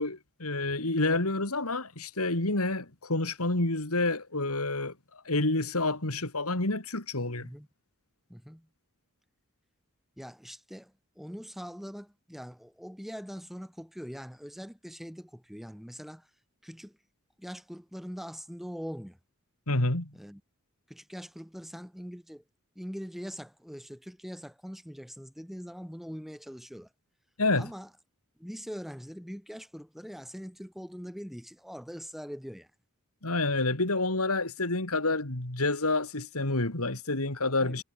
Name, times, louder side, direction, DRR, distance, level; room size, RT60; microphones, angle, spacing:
voice 1, 0.0-4.9 5.2-7.5 19.7-20.1 27.4-27.7 33.2-37.8, left 2 dB, 85° left, 3.5 m, -28 dB
voice 2, 8.3-8.7 10.2-16.3 16.6-17.0 17.4-19.2 20.1-20.4 20.9-22.4 22.7-26.9 27.6-27.9 28.4-32.7 37.6-37.8, equal, ahead, 3.4 m, -42 dB
head